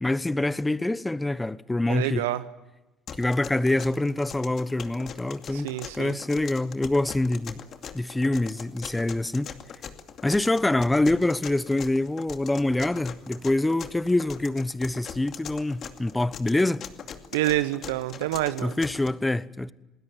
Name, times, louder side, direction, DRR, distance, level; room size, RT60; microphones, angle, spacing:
voice 1, 0.0-2.2 3.2-5.7 6.0-7.6 7.9-9.5 10.2-16.8 18.6-19.7, left 2 dB, 10° left, 1.1 m, -25 dB
voice 2, 1.9-2.4 5.5-6.2 17.3-18.8, right 16 dB, 80° right, 0.9 m, -27 dB
sound 1, 3.1-19.1, left 8 dB, 50° left, 2.4 m, -41 dB
28.0 x 20.0 x 9.3 m
hypercardioid pair, 65°, 0 cm